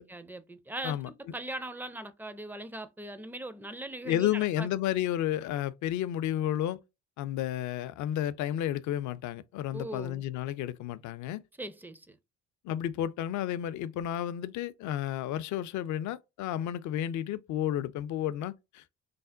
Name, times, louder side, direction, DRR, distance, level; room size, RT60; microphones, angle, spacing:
voice 1, 0.0-4.7 9.7-10.2 11.6-12.2, right 1 dB, 5° right, 0.4 m, -40 dB
voice 2, 4.0-6.8 7.2-11.4 12.6-18.9, left 11 dB, 55° left, 0.5 m, -32 dB
3.3 x 2.1 x 3.7 m
supercardioid pair, 70°, 37 cm